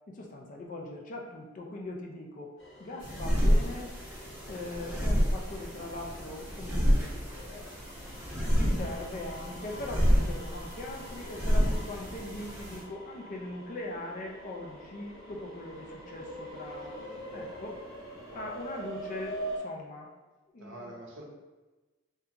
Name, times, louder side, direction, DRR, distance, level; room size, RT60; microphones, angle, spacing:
voice 1, 0.1-2.5 2.8-3.9 4.5-7.7 8.2-17.8 18.3-20.1 20.5-21.0, left 2 dB, 40° left, 0 dB, 0.4 m, -41 dB
sound 1, 2.6-19.6, right 1 dB, 65° left, 0.9 m, -45 dB
sound 2, 3.0-12.8, equal, 10° right, 0.7 m, -29 dB
voice 2, 16.9-18.5 20.6-21.2, right 1 dB, 70° right, -1 dB, 0.6 m, -48 dB
2.8 x 2.3 x 2.4 m, 1.2 s
head